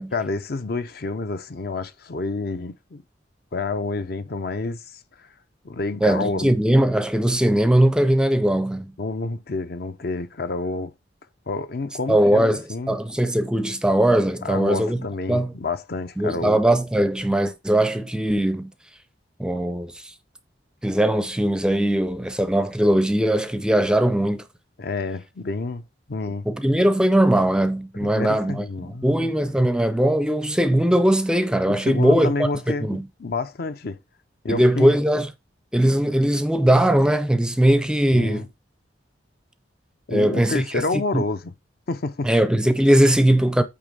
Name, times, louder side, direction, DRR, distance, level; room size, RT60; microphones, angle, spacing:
voice 1, 0.1-3.0 3.5-5.3 5.6-6.5 9.0-10.9 11.5-13.0 14.4-16.6 24.8-25.8 26.1-26.5 28.0-29.3 31.7-34.0 34.4-34.9 38.1-38.5 40.1-41.5 41.9-42.3, left 3 dB, 55° left, 0.6 m, -29 dB
voice 2, 6.0-8.9 12.1-15.0 15.3-15.5 16.2-18.7 19.4-20.1 20.8-24.5 26.5-28.6 29.0-32.5 32.8-33.1 34.5-35.3 35.7-38.5 40.1-40.7 41.1-41.2 42.2-43.6, right 1 dB, 5° right, 0.5 m, -20 dB
8.6 x 2.9 x 5.3 m
head